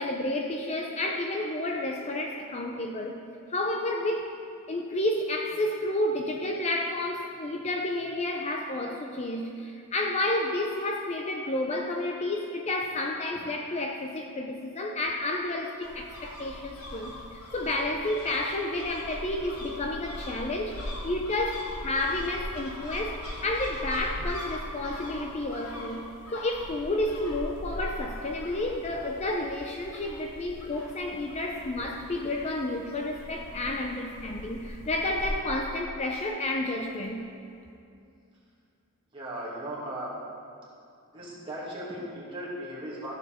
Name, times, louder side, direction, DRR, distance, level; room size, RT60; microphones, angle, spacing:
voice 1, 0.0-3.2 3.5-4.4 4.7-26.1 26.3-37.2, left 1 dB, 30° left, 2 dB, 0.5 m, -31 dB
sound 1, 15.8-35.4, left 1 dB, 75° left, 1.8 m, -40 dB
voice 2, 39.1-40.1 41.1-43.1, right 1 dB, 25° right, -6 dB, 2.2 m, -37 dB
14.5 x 7.3 x 3.5 m, 2.5 s
head